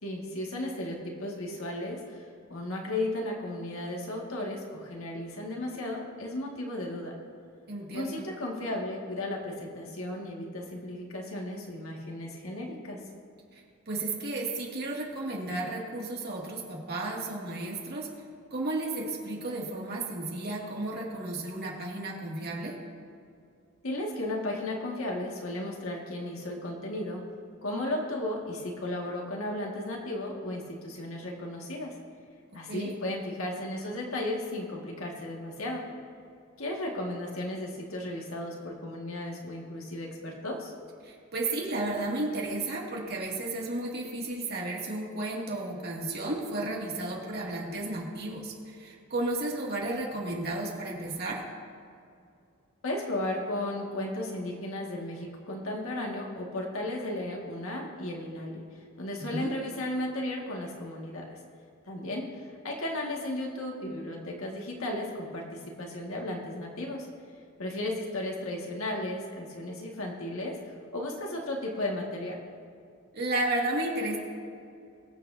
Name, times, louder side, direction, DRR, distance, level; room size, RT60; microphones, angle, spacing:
voice 1, 0.0-2.2 2.5-7.2 7.9-13.0 23.8-27.2 27.6-31.9 32.5-35.9 36.6-40.7 52.8-58.6 59.0-61.4 61.9-67.1 67.6-70.6 70.9-72.4, left 1 dB, 70° left, -1 dB, 1.9 m, -35 dB
voice 2, 7.7-8.2 13.5-13.6 13.9-18.1 18.5-22.7 32.7-33.0 41.0-51.4 59.2-59.5 73.1-74.2, right 2 dB, 50° right, -3 dB, 2.3 m, -33 dB
22.5 x 7.8 x 2.7 m, 2.5 s
head